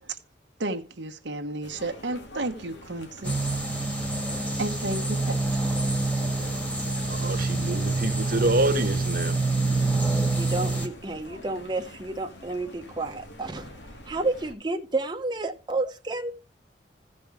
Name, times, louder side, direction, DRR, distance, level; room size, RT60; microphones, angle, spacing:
voice 1, 0.6-3.3 4.6-5.4, right 2 dB, 90° right, 1.2 m, -32 dB
sound 1, 1.6-14.5, left 1 dB, 85° left, 2.1 m, -46 dB
sound 2, 3.2-10.9, right 2 dB, 10° left, 1.8 m, -26 dB
voice 2, 7.1-9.4, right 1 dB, 55° right, 1.3 m, -26 dB
voice 3, 10.3-13.8 14.1-16.3, right 2 dB, 25° right, 0.9 m, -30 dB
15.0 x 5.4 x 4.7 m
head